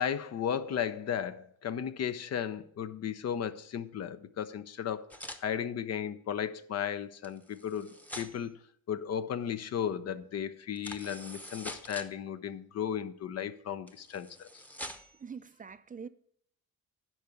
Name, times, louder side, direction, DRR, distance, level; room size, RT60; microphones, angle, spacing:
voice 1, 0.0-5.1 5.4-8.5 8.9-14.5, left 8 dB, 55° left, 0.7 m, -35 dB
sound 1, 5.1-5.4 7.2-8.5 10.8-12.1 13.9-15.2, equal, 5° left, 0.9 m, -45 dB
voice 2, 15.2-16.1, right 6 dB, 30° right, 0.4 m, -44 dB
10.0 x 4.7 x 6.9 m
cardioid pair, 90°, 30 cm